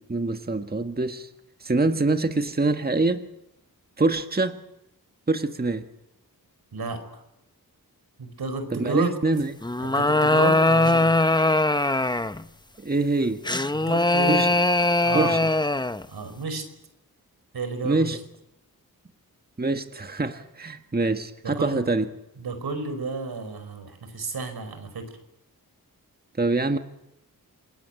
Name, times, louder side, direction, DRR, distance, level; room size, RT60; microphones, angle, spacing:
voice 1, 0.1-1.3 1.6-3.2 4.0-4.6 5.3-5.8 8.7-9.5 12.8-13.4 14.3-14.5 15.1-15.4 17.8-18.2 19.6-22.0 26.4-26.8, right 3 dB, 25° right, 7 dB, 1.6 m, -24 dB
voice 2, 6.7-7.2 8.2-9.1 9.8-11.1 13.7-14.4 15.0-15.3 16.1-16.6 17.5-18.2 21.4-21.8 22.4-25.1, right 3 dB, 85° right, 8 dB, 5.0 m, -31 dB
sound 1, 9.6-12.4 13.4-16.0, left 2 dB, 10° left, 0.9 m, -21 dB
27.5 x 21.0 x 8.9 m, 0.87 s
wide cardioid pair, 75°, 37 cm